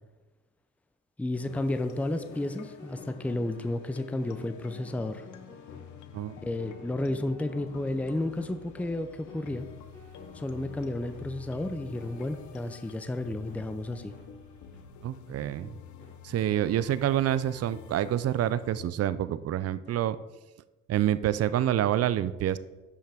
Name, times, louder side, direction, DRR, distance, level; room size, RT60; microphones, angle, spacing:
voice 1, 1.2-5.2 6.4-9.7 10.3-14.1, left 1 dB, 5° left, 9 dB, 0.5 m, -32 dB
sound 1, 1.4-12.9 13.5-13.6 14.1-14.2 14.7-14.8 15.4-15.5 16.0-16.1 16.7-16.8 17.5-17.6 18.3-18.4 19.1-19.2 19.9-20.0, left 4 dB, 40° left, 2.8 m, -50 dB
sound 2, 1.5-18.9, left 8 dB, 75° left, 0.7 m, -49 dB
sound 3, 7.4-14.9, right 4 dB, 85° right, 1.8 m, -59 dB
voice 2, 15.0-15.8 16.2-20.2 20.9-22.6, right 11 dB, 55° right, 15 dB, 0.5 m, -27 dB
11.0 x 5.6 x 3.5 m, 1.1 s
cardioid pair, 90°, 30 cm